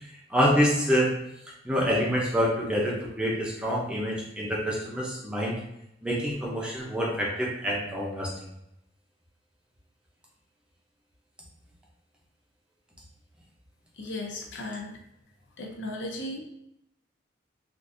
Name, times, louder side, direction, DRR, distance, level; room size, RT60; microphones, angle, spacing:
voice 1, 0.3-1.1 1.6-5.6 6.0-8.3, equal, 5° right, -4 dB, 0.6 m, -26 dB
voice 2, 14.0-15.0 15.6-16.4, left 1 dB, 80° left, 1 dB, 0.6 m, -36 dB
3.4 x 2.5 x 2.6 m, 0.82 s
head